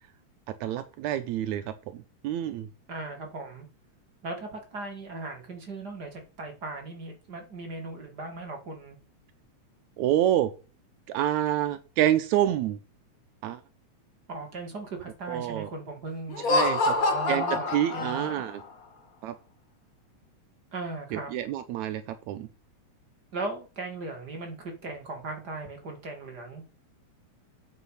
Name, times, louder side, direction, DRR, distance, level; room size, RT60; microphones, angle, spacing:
voice 1, 0.6-2.7 10.0-10.5 11.1-12.8 13.4-13.6 15.3-15.7 16.5-16.9 17.3-18.6 19.2-19.3 21.1-22.5, right 12 dB, 80° right, 9 dB, 2.1 m, -27 dB
voice 2, 2.9-3.7 4.2-9.0 14.3-18.4 20.7-21.3 23.3-26.6, right 3 dB, 35° right, 3 dB, 2.3 m, -38 dB
Laughter, 16.3-18.6, left 3 dB, 45° left, 1.3 m, -26 dB
8.3 x 6.2 x 5.7 m, 0.32 s
omnidirectional pair, 3.3 m